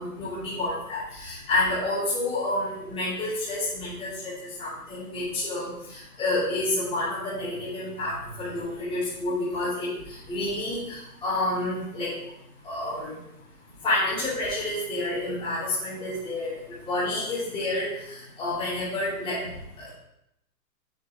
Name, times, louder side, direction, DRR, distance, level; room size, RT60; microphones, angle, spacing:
voice 1, 0.0-4.3 4.6-9.9 10.3-12.1 12.6-13.1 13.8-16.6 16.9-17.9 18.4-19.4 19.8-19.9, left 2 dB, 10° left, -11 dB, 2.8 m, -29 dB
7.4 x 4.6 x 4.8 m, 0.82 s
hypercardioid pair, 155°, 47 cm